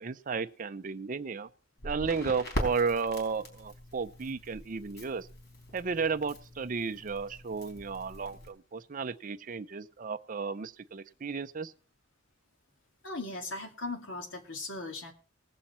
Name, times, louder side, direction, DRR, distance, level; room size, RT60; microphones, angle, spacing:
voice 1, 0.0-1.5 1.8-5.3 5.7-11.7, right 5 dB, 45° right, 0.5 m, -33 dB
Crackle, 1.8-8.5, equal, 60° left, 4.2 m, -41 dB
voice 2, 13.0-15.1, left 2 dB, 75° left, 2.2 m, -38 dB
19.5 x 7.6 x 4.3 m
head